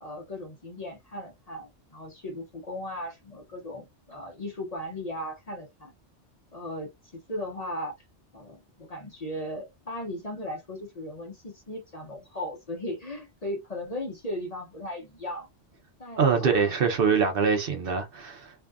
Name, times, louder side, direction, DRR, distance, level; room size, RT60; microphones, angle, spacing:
voice 1, 0.0-5.9 6.5-6.9 7.3-7.9 8.3-15.5 16.0-16.7, left 1 dB, 40° left, 0.7 m, -37 dB
voice 2, 16.2-18.5, right 5 dB, 60° right, 0.7 m, -24 dB
2.6 x 2.3 x 2.2 m
omnidirectional pair, 1.2 m